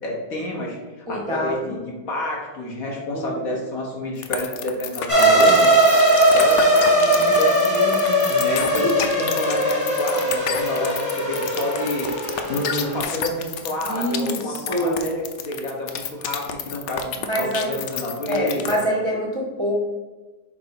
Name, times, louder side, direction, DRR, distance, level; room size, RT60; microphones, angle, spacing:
voice 1, 0.0-18.9, left 1 dB, 55° left, -1 dB, 1.6 m, -29 dB
voice 2, 1.1-1.8 3.1-3.4 8.8-9.0 13.8-15.1 17.2-17.7 18.3-19.9, equal, 20° right, -4 dB, 0.8 m, -25 dB
sound 1, 4.2-18.9, left 9 dB, 90° left, 1.3 m, -29 dB
sound 2, 5.1-13.0, right 1 dB, 10° left, 1.4 m, -19 dB
7.1 x 2.7 x 5.8 m, 1.2 s
omnidirectional pair, 1.8 m